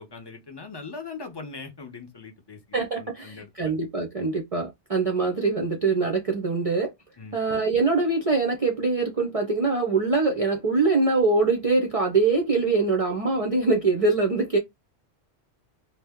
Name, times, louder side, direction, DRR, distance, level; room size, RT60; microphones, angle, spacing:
voice 1, 0.0-3.7 7.2-7.4, left 4 dB, 30° left, 0.5 m, -41 dB
voice 2, 2.7-6.9 7.3-14.6, right 3 dB, 45° right, 0.4 m, -23 dB
2.7 x 2.0 x 3.4 m
omnidirectional pair, 1.2 m